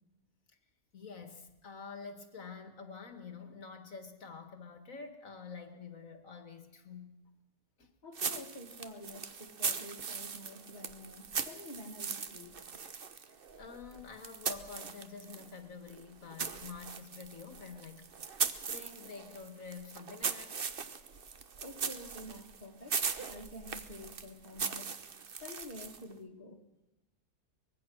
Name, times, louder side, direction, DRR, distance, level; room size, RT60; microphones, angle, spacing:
voice 1, 0.9-7.2 7.8-7.9 13.3-18.4 18.7-20.7, left 5 dB, 60° left, 7 dB, 2.0 m, -48 dB
voice 2, 8.0-12.6 21.6-24.9 25.4-26.6, left 1 dB, 30° left, 2 dB, 2.0 m, -49 dB
sound 1, 8.1-15.5 15.9-26.1, right 6 dB, 40° right, 1.0 m, -39 dB
24.0 x 20.5 x 6.3 m, 0.94 s
omnidirectional pair, 1.6 m